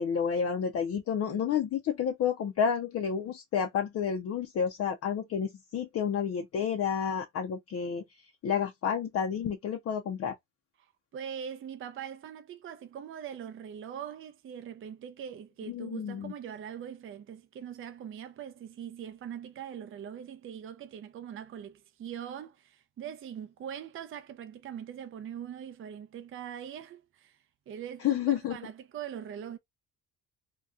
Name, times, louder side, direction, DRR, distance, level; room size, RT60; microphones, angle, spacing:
voice 1, 0.0-10.3 15.7-16.3 28.0-28.6, left 7 dB, 45° left, 0.6 m, -30 dB
voice 2, 11.1-27.4 27.7-29.6, right 9 dB, 40° right, 0.5 m, -42 dB
2.7 x 2.2 x 3.5 m
cardioid pair, 120°, 34 cm